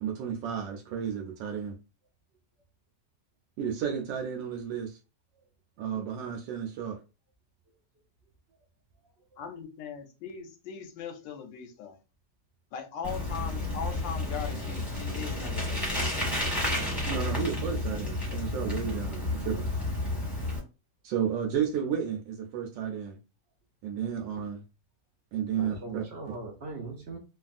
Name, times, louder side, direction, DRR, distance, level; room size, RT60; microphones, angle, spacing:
voice 1, 0.0-1.8 3.6-5.0 5.8-7.0 17.1-19.7 21.0-23.2 23.8-24.6 25.3-26.0, right 8 dB, 85° right, 1.3 m, -32 dB
voice 2, 9.4-12.0 12.7-15.9, left 6 dB, 85° left, 1.3 m, -39 dB
Bicycle, 13.0-20.6, left 2 dB, ahead, 0.9 m, -31 dB
voice 3, 25.5-27.2, right 3 dB, 65° right, 0.6 m, -40 dB
3.2 x 2.3 x 2.4 m
omnidirectional pair, 1.9 m